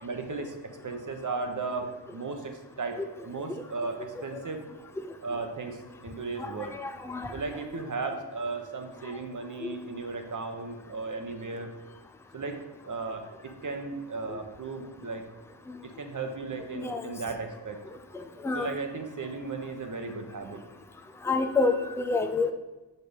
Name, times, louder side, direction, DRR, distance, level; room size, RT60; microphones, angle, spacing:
voice 1, 0.0-0.6 0.8-4.7 5.2-6.7 7.3-11.7 12.3-12.6 12.9-13.2 13.6-15.2 15.8-17.8 18.5-20.6, right 4 dB, 40° right, 5 dB, 1.1 m, -35 dB
voice 2, 6.8-7.3 9.6-9.7 16.7-17.0 18.4-18.7 21.2-22.5, left 3 dB, 5° left, 6 dB, 0.5 m, -27 dB
6.8 x 5.6 x 5.1 m, 1.1 s
cardioid pair, 80°, 47 cm